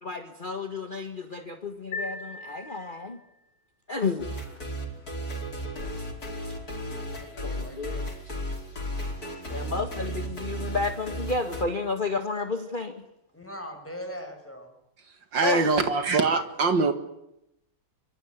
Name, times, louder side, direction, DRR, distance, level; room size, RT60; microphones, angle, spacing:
voice 1, 0.0-3.2 3.9-4.3 7.4-8.0 9.5-13.0 15.4-15.8, left 3 dB, 25° left, 6 dB, 1.8 m, -31 dB
sound 1, 1.9-3.4, left 3 dB, 80° left, 5.2 m, -38 dB
sound 2, 4.2-11.6, right 1 dB, 50° left, 5.5 m, -35 dB
voice 2, 6.8-8.1 13.3-14.7, equal, 5° left, 4 dB, 6.6 m, -42 dB
voice 3, 15.3-16.9, right 4 dB, 70° right, 8 dB, 2.6 m, -23 dB
25.0 x 25.0 x 9.7 m, 0.82 s
omnidirectional pair, 2.1 m